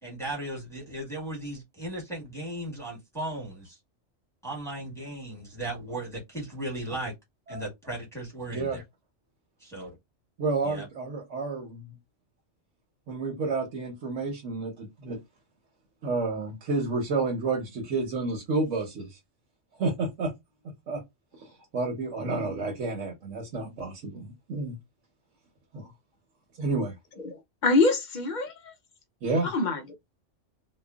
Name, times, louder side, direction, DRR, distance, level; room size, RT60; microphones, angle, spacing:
voice 1, 0.0-3.8 4.4-7.1 7.5-8.8 9.6-9.9 10.6-10.9, right 1 dB, ahead, 1.3 m, -36 dB
voice 2, 10.4-11.9 13.1-15.2 16.0-19.2 19.8-20.3 20.9-21.0 21.4-21.5 21.7-24.8 25.7-25.9 26.6-26.9 29.2-29.5, right 3 dB, 85° right, 1.2 m, -30 dB
voice 3, 27.6-28.7 29.4-29.9, left 3 dB, 55° left, 0.5 m, -24 dB
3.1 x 2.2 x 2.3 m
omnidirectional pair, 1.2 m